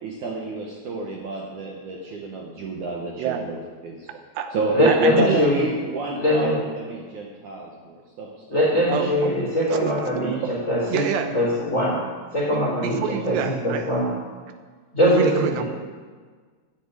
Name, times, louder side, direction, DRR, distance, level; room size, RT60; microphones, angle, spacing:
voice 1, 0.0-4.1 4.5-9.0, right 3 dB, 60° right, -2 dB, 2.2 m, -30 dB
voice 2, 3.2-3.5 4.1-4.5 4.9-5.4 8.9-9.4 9.7-10.5 10.9-11.3 12.5-13.9 15.1-15.6, right 8 dB, 80° right, 7 dB, 3.0 m, -28 dB
voice 3, 4.7-5.7 6.2-6.6 8.5-11.0 11.3-12.0 12.3-14.1 14.9-15.6, left 1 dB, 20° left, -5 dB, 3.4 m, -21 dB
9.8 x 9.6 x 8.3 m, 1.5 s
omnidirectional pair, 4.9 m